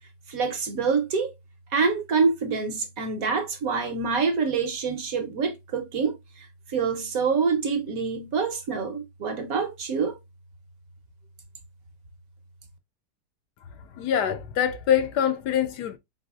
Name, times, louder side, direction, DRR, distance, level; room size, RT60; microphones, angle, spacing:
voice 1, 0.3-1.3 1.7-10.2, right 5 dB, 60° right, 1.1 m, -26 dB
voice 2, 14.0-16.0, left 9 dB, 75° left, 1.1 m, -24 dB
4.5 x 4.1 x 2.3 m
omnidirectional pair, 1.9 m